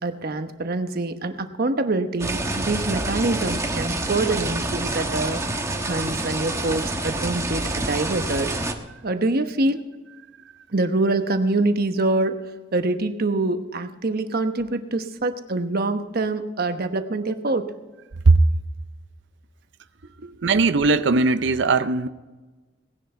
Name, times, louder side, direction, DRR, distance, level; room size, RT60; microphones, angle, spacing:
voice 1, 0.0-5.4 5.9-8.5 9.0-9.9 10.7-17.7 20.2-20.4, right 2 dB, 55° right, 1.0 m, -25 dB
sound 1, 2.2-8.7, right 2 dB, 15° right, 1.1 m, -27 dB
voice 2, 20.4-22.1, right 3 dB, 70° right, 0.6 m, -18 dB
18.0 x 10.5 x 4.4 m
head